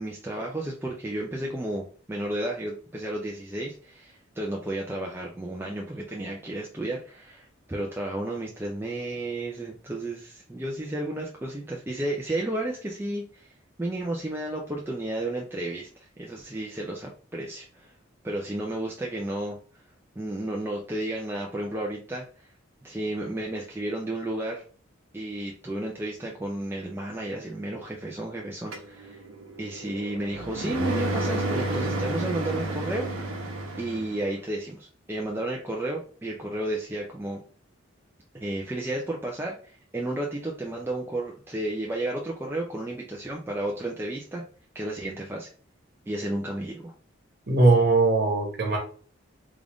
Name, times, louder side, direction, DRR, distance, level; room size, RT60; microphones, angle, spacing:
voice 1, 0.0-13.5 13.8-15.9 16.2-17.9 18.2-19.6 20.2-22.5 22.8-24.6 25.1-29.2 29.6-33.4 33.8-37.4 38.4-44.4 44.7-45.5 46.1-46.9, right 1 dB, 10° right, 0.4 m, -32 dB
sound 1, 28.7-34.3, right 2 dB, 80° right, 0.9 m, -31 dB
voice 2, 47.5-48.8, right 3 dB, 50° right, 1.1 m, -20 dB
3.6 x 2.5 x 3.4 m
head